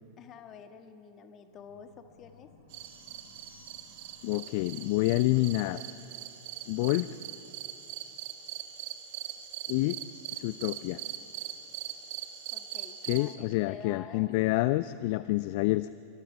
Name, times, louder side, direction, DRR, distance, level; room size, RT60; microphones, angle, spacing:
voice 1, 0.2-2.5 12.5-14.3, left 7 dB, 30° left, 7 dB, 1.6 m, -49 dB
sound 1, 1.5-6.6, left 3 dB, 75° left, 5.1 m, -60 dB
sound 2, 2.7-13.3, right 12 dB, 45° right, 1.6 m, -42 dB
sound 3, 2.8-4.4, left 4 dB, 85° right, 7.4 m, -62 dB
voice 2, 4.2-5.8 6.7-7.1 9.7-10.0 10.3-11.0 13.0-15.9, left 19 dB, 45° left, 16 dB, 0.4 m, -28 dB
26.5 x 24.0 x 4.9 m, 2.9 s
figure-of-eight pair, 90°, 0 cm